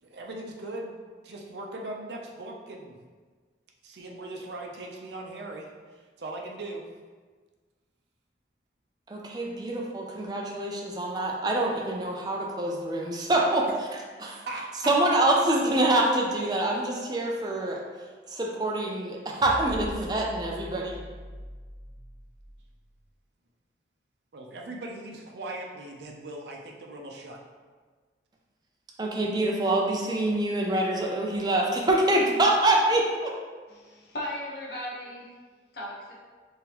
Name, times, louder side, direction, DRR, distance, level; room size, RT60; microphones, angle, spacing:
voice 1, 0.0-3.0 3.8-5.7 6.2-6.8 13.7-13.8 14.5-14.9 15.4-15.5 24.3-27.4, right 2 dB, 70° right, 0 dB, 0.6 m, -39 dB
voice 2, 9.1-14.4 14.9-17.8 18.3-21.0 29.0-33.3, right 1 dB, 25° right, -1 dB, 0.4 m, -25 dB
sound 1, 19.4-22.8, equal, 40° left, 0.7 m, -41 dB
voice 3, 33.7-35.2 35.7-36.1, left 1 dB, 65° left, -6 dB, 1.0 m, -36 dB
3.5 x 3.5 x 3.0 m, 1.5 s
head